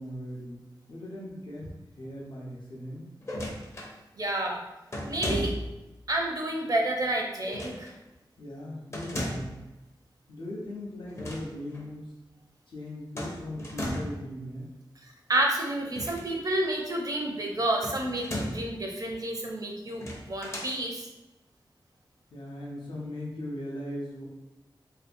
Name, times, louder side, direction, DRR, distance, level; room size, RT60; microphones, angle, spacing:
voice 1, 0.0-3.0 8.4-9.6 10.3-12.1 12.7-14.7 22.3-24.2, left 1 dB, 75° left, -4 dB, 0.6 m, -39 dB
sound 1, 3.2-3.9 4.9-5.8 7.5-7.9 8.9-9.6 11.0-11.5 11.7-11.9 13.2-14.3 15.9-16.7 17.8-18.7 19.9-20.8, equal, 35° left, 0.5 m, -35 dB
voice 2, 4.2-4.6 5.1-5.5 6.1-7.9 15.3-20.0 20.3-21.1, right 1 dB, 45° right, 0 dB, 0.5 m, -29 dB
2.6 x 2.3 x 2.5 m, 0.99 s
wide cardioid pair, 80°, 8 cm